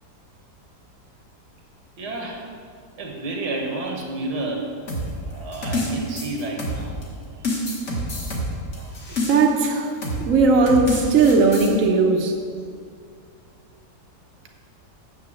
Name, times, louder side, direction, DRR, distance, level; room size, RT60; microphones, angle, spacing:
voice 1, 2.0-2.5 3.0-4.7 5.3-7.0 9.8-9.9, right 2 dB, 80° right, 1 dB, 1.9 m, -30 dB
sound 1, 4.9-7.0 7.4-9.6 10.0-10.3 10.7-11.7, left 1 dB, 45° left, 1.9 m, -27 dB
voice 2, 9.3-9.9 10.2-12.4, right 4 dB, 60° right, 1 dB, 1.1 m, -17 dB
6.9 x 6.7 x 7.7 m, 2.1 s
omnidirectional pair, 1.7 m